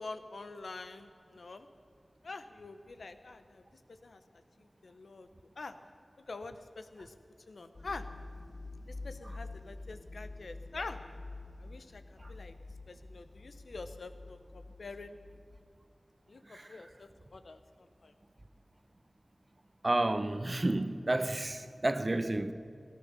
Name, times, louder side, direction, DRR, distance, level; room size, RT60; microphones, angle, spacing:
voice 1, 0.0-1.7 2.2-4.2 4.6-5.3 5.6-5.8 6.3-7.2 7.5-8.0 8.9-11.0 11.6-12.5 12.9-15.2 16.3-18.1, left 3 dB, 90° left, 0.8 m, -46 dB
sound 1, 7.7-15.6, left 2 dB, 50° left, 0.8 m, -47 dB
voice 2, 19.8-22.5, right 2 dB, 40° right, 0.8 m, -31 dB
17.0 x 11.5 x 6.8 m
wide cardioid pair, 45°, 0 cm